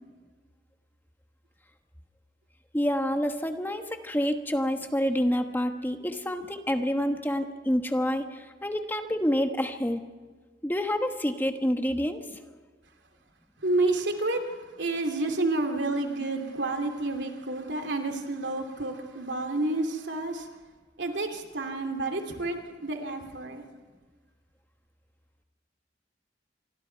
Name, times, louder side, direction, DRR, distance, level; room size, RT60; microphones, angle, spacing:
voice 1, 2.7-10.0 10.6-12.3, equal, 10° left, 6 dB, 1.2 m, -28 dB
voice 2, 13.6-14.4 14.8-20.5 21.0-23.6, right 2 dB, 80° right, 4 dB, 2.8 m, -29 dB
27.0 x 24.0 x 4.6 m, 1.4 s
head